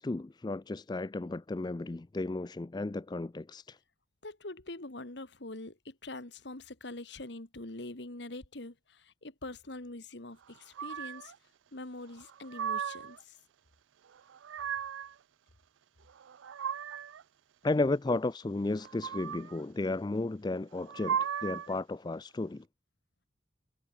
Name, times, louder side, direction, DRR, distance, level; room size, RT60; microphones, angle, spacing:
voice 1, 0.0-3.8 17.6-22.6, left 2 dB, 20° left, 0.4 m, -33 dB
voice 2, 4.2-8.7 9.2-11.3 11.7-13.2, left 2 dB, 60° left, 1.9 m, -44 dB
sound 1, 10.7-11.3 12.2-13.2 14.1-15.1 16.1-17.2 18.7-19.6 20.7-21.8, right 8 dB, 80° right, 0.4 m, -36 dB
head